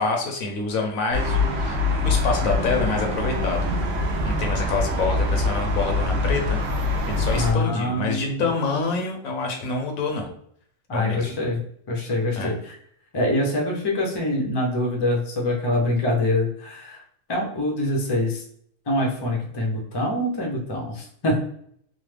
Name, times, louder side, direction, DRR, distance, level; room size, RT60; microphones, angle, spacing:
voice 1, 0.0-1.8 2.0-3.7 4.2-6.6 7.1-10.3 10.9-11.4 12.3-12.5, left 3 dB, 85° left, 2 dB, 1.2 m, -27 dB
sound 1, 1.1-7.5, left 2 dB, 70° right, 1.0 m, -24 dB
voice 2, 7.3-8.5 10.9-11.6 11.9-12.8 13.1-17.0 17.3-18.4 18.9-21.4, left 1 dB, 30° left, -1 dB, 0.4 m, -24 dB
3.1 x 2.0 x 3.2 m, 0.65 s
omnidirectional pair, 1.4 m